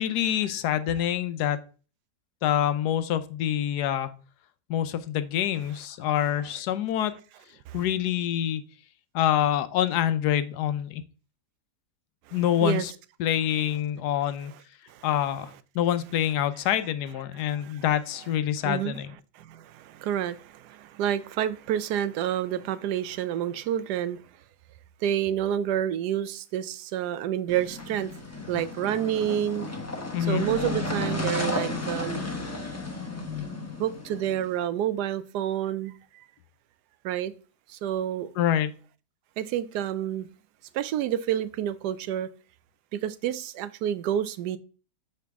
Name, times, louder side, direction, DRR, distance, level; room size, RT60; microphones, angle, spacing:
voice 1, 0.0-1.6 2.4-4.1 4.7-7.1 7.7-8.6 9.1-11.0 12.3-12.9 13.2-14.5 15.0-15.5 15.7-19.1 30.1-30.4 38.4-38.7, left 11 dB, 85° left, 1.2 m, -26 dB
voice 2, 6.2-6.6 7.0-7.2 7.7-7.9 12.3-12.9 13.3-13.8 14.5-14.6 14.9-15.6 16.2-18.0 18.3-24.2 25.0-28.1 28.5-29.7 30.3-32.2 33.8-36.2 37.0-37.3 37.7-38.3 39.4-40.3 40.7-42.3 42.9-44.6, right 10 dB, 85° right, 1.2 m, -30 dB
sound 1, 27.5-34.5, left 2 dB, 10° left, 0.9 m, -33 dB
6.7 x 5.0 x 3.5 m
omnidirectional pair, 1.7 m